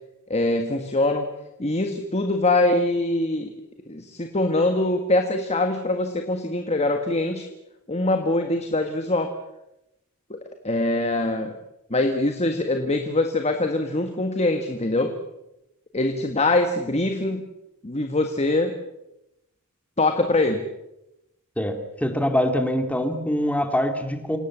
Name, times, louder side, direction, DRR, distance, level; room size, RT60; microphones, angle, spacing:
voice 1, 0.3-1.3 1.6-3.5 3.9-7.5 7.9-9.3 10.3-10.4 10.6-11.5 11.9-15.1 15.9-17.4 17.8-18.7 20.0-20.6, left 2 dB, 30° left, 5 dB, 1.7 m, -23 dB
voice 2, 21.6-24.4, equal, 5° left, 6 dB, 2.7 m, -24 dB
27.5 x 18.0 x 7.4 m, 0.90 s
head